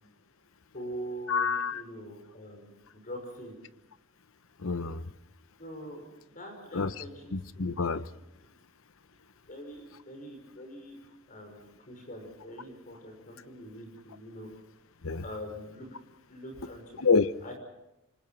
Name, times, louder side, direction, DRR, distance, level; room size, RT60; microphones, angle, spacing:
voice 1, 0.7-3.6 5.6-6.1 6.3-7.7 8.1-8.2 9.5-11.0 11.3-14.5 15.2-15.9 16.3-16.8 17.4-17.6, equal, 40° left, 4 dB, 5.8 m, -43 dB
voice 2, 1.3-1.8 4.6-5.0 6.7-6.9 7.3-8.0 15.0-15.2 17.0-17.3, left 5 dB, 65° left, 14 dB, 0.9 m, -27 dB
27.5 x 24.5 x 6.0 m, 0.88 s
head